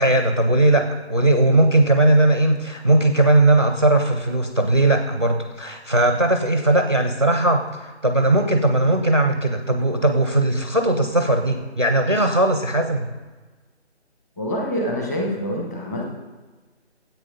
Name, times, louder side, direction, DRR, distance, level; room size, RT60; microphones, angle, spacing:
voice 1, 0.0-13.1, right 1 dB, 25° right, 6 dB, 0.5 m, -18 dB
voice 2, 14.4-16.0, equal, 15° left, -1 dB, 1.3 m, -26 dB
13.0 x 8.2 x 5.3 m, 1.3 s
figure-of-eight pair, 165°, 35 cm